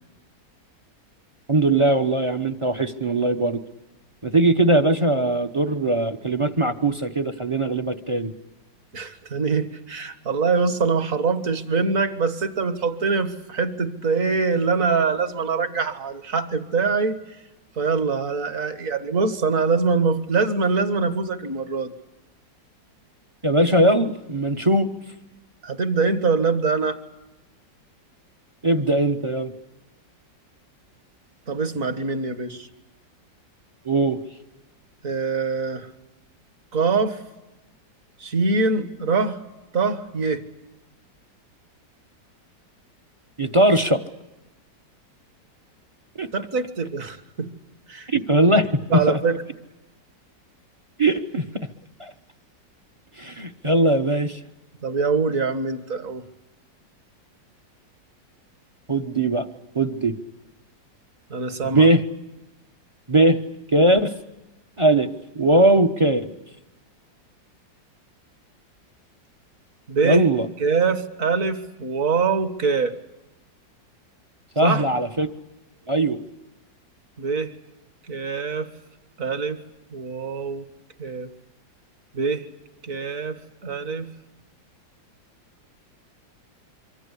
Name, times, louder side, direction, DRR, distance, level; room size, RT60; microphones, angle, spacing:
voice 1, 1.5-3.6 4.2-8.3 23.4-24.9 28.6-29.5 33.8-34.2 43.4-44.0 46.2-46.3 48.1-49.2 51.0-51.7 52.0-52.1 53.2-54.4 58.9-59.5 59.7-60.2 61.7-62.0 63.1-63.4 63.7-64.1 64.8-65.1 65.3-66.3 70.0-70.5 74.6-75.3 75.9-76.2, right 1 dB, 25° right, 10 dB, 0.7 m, -20 dB
voice 2, 8.9-17.2 17.8-21.9 25.6-27.0 31.5-32.7 35.0-35.9 36.7-37.2 38.2-39.4 39.7-40.4 46.3-47.5 47.9-48.1 48.9-49.4 54.8-56.2 61.3-61.9 69.9-70.2 70.6-72.9 74.6-74.9 77.2-77.5 78.1-78.7 79.2-79.6 79.9-80.6 81.0-81.3 82.1-82.5 82.8-84.1, right 4 dB, 50° right, 10 dB, 1.9 m, -24 dB
26.5 x 24.5 x 8.3 m, 1.0 s
omnidirectional pair, 2.0 m